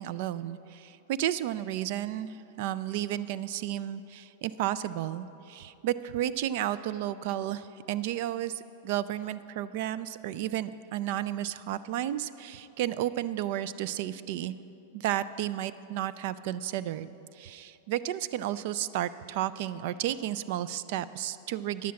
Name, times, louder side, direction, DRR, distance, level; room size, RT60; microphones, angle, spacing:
voice 1, 0.0-14.6 14.9-21.9, right 12 dB, 45° right, 15 dB, 0.3 m, -32 dB
10.5 x 7.0 x 7.5 m, 2.9 s
supercardioid pair, 170°, 0 cm